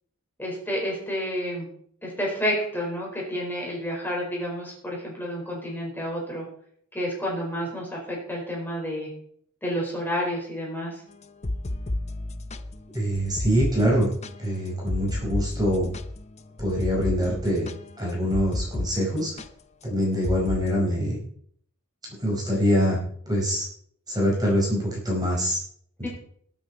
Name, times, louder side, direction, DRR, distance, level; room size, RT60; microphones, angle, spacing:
voice 1, 0.4-1.7 2.0-6.4 6.9-9.1 9.6-11.0 26.0-26.1, equal, 10° left, -2 dB, 4.6 m, -30 dB
sound 1, 11.2-18.9 19.2-19.5 20.2-20.6, left 1 dB, 30° left, 0.7 m, -32 dB
voice 2, 12.9-14.1 14.4-15.9 16.6-17.7 18.0-19.4 19.8-21.2 22.2-23.0 23.3-23.7 24.1-25.6 26.0-26.1, equal, 20° right, -2 dB, 5.0 m, -24 dB
21.5 x 8.5 x 4.2 m, 0.64 s
head